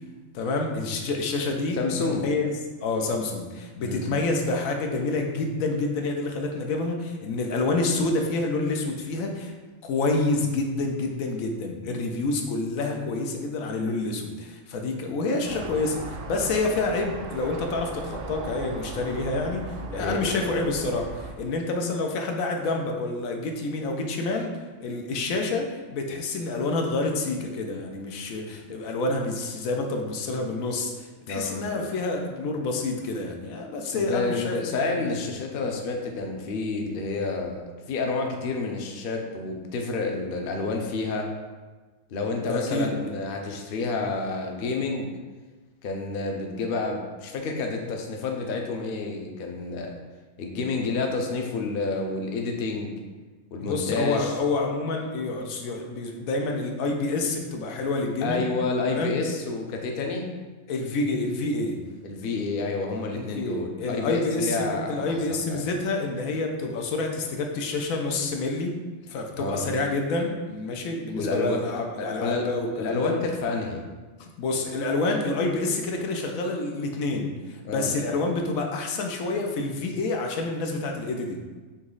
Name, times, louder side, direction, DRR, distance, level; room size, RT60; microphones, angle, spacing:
voice 1, 0.3-1.8 2.2-2.5 2.8-9.5 9.8-24.5 24.8-34.6 42.4-43.0 53.6-58.5 58.9-59.2 60.7-61.8 63.1-68.8 69.1-73.1 74.2-81.4, left 3 dB, 90° left, 2 dB, 1.1 m, -28 dB
voice 2, 1.8-2.3 3.8-4.1 20.0-20.5 31.3-31.7 33.9-41.3 42.1-45.1 45.8-49.9 50.4-53.0 53.5-54.3 58.2-60.3 62.0-65.0 65.3-65.7 69.4-69.7 71.1-71.6 72.0-72.5 72.7-73.8 77.6-77.9, left 3 dB, 55° left, 2 dB, 0.7 m, -29 dB
sound 1, 15.4-21.3, right 3 dB, 60° right, 0.6 m, -38 dB
4.1 x 3.0 x 3.8 m, 1.3 s
omnidirectional pair, 1.4 m